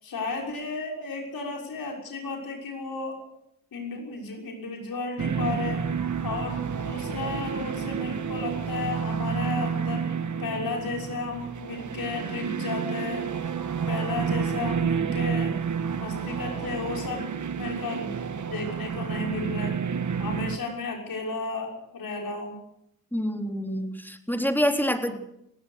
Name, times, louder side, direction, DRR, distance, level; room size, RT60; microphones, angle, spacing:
voice 1, 0.0-3.2 3.7-5.8 6.2-10.1 10.4-13.3 13.9-15.5 16.0-18.1 18.5-19.8 20.1-22.6 25.0-25.1, left 3 dB, 80° left, 0 dB, 6.3 m, -33 dB
sound 1, 5.2-20.6, right 6 dB, 55° right, 1.6 m, -30 dB
voice 2, 23.1-25.1, equal, 5° left, 4 dB, 3.9 m, -26 dB
22.5 x 17.0 x 6.7 m, 0.78 s
supercardioid pair, 45°, 35 cm